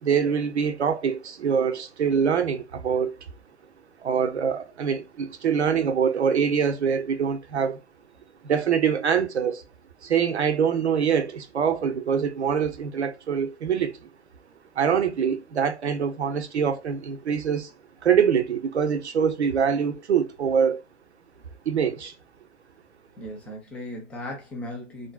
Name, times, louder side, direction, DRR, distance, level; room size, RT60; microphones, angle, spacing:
voice 1, 0.0-3.1 4.0-7.8 8.4-9.6 10.0-13.9 14.8-17.7 18.0-20.8 21.7-22.1, right 7 dB, 70° right, 0.7 m, -24 dB
voice 2, 23.2-25.1, left 1 dB, 5° left, 0.4 m, -37 dB
3.7 x 2.6 x 2.2 m
figure-of-eight pair, 115°, 35 cm